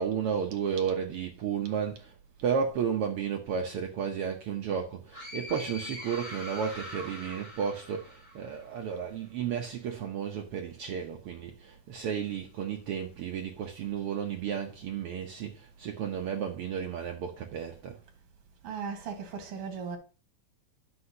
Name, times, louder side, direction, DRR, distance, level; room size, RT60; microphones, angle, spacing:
voice 1, 0.0-2.1 2.4-18.0, right 7 dB, 80° right, 1.2 m, -33 dB
sound 1, 5.1-8.8, left 1 dB, 25° left, 4.1 m, -43 dB
voice 2, 18.6-20.0, right 6 dB, 55° right, 2.2 m, -37 dB
9.6 x 6.8 x 2.8 m
omnidirectional pair, 3.6 m